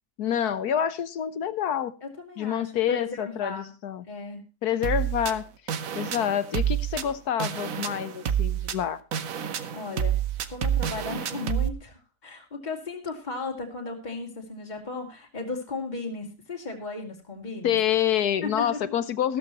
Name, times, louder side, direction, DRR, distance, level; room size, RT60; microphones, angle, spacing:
voice 1, 0.2-1.9 2.4-4.0 4.6-9.0 17.6-19.4, left 9 dB, 70° left, 14 dB, 1.4 m, -27 dB
voice 2, 2.0-3.7 4.1-4.4 9.7-10.2 10.5-17.8 18.4-18.8, left 3 dB, 25° left, 1 dB, 2.6 m, -35 dB
sound 1, 4.8-11.7, right 9 dB, 60° right, 1.3 m, -29 dB
15.0 x 13.0 x 3.0 m, 0.31 s
omnidirectional pair, 1.8 m